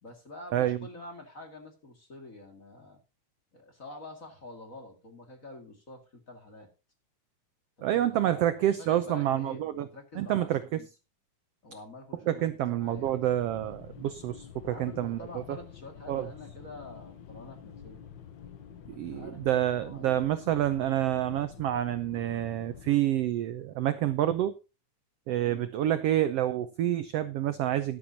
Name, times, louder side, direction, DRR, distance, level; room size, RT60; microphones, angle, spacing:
voice 1, 0.0-3.0 3.5-6.7 7.8-8.5 8.8-10.9 11.6-13.1 14.6-18.0 18.9-20.2 25.3-25.7, left 2 dB, 30° left, 2.1 m, -47 dB
voice 2, 7.8-9.9 10.1-10.6 12.3-15.6 16.1-16.3 18.9-24.5 25.3-28.0, right 12 dB, 75° right, 1.4 m, -28 dB
sound 1, 12.8-22.9, left 7 dB, 85° left, 1.0 m, -48 dB
14.0 x 11.5 x 2.8 m
omnidirectional pair, 3.6 m